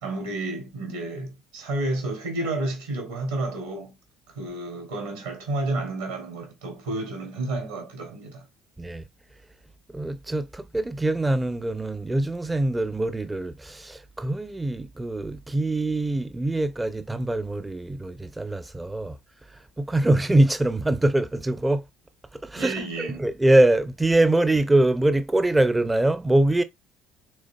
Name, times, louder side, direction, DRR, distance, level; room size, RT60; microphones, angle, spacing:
voice 1, 0.0-3.9 4.3-8.4 22.6-23.3, right 2 dB, 75° right, 2.6 m, -31 dB
voice 2, 9.9-19.2 19.5-21.8 22.3-26.6, right 1 dB, 15° right, 0.5 m, -23 dB
6.2 x 3.8 x 2.2 m
figure-of-eight pair, 55°, 0 cm